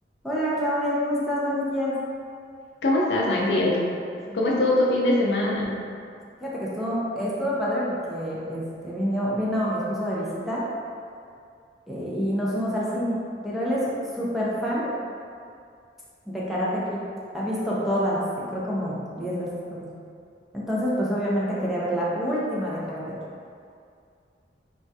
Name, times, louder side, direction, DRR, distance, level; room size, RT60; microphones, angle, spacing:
voice 1, 0.2-2.0 4.2-4.4 6.4-10.6 11.9-14.9 16.3-17.1 17.3-18.2 18.5-19.8 20.5-23.0, equal, ahead, -8 dB, 0.4 m, -27 dB
voice 2, 2.8-3.8 4.3-5.7, left 1 dB, 70° left, -3 dB, 0.5 m, -22 dB
3.3 x 2.3 x 2.6 m, 2.4 s
head